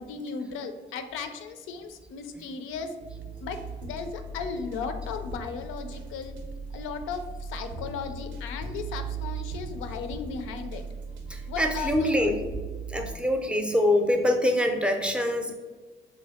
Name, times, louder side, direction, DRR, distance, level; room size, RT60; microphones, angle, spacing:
voice 1, 0.0-2.9 3.4-6.3 6.7-10.8 11.5-12.3, left 5 dB, 90° left, 8 dB, 0.4 m, -36 dB
sound 1, 3.0-13.1, right 3 dB, 70° right, 0.6 m, -38 dB
voice 2, 11.3-12.4 12.9-15.5, left 1 dB, 5° right, 4 dB, 0.5 m, -24 dB
3.2 x 2.6 x 3.5 m, 1.3 s
cardioid pair, 90°, 20 cm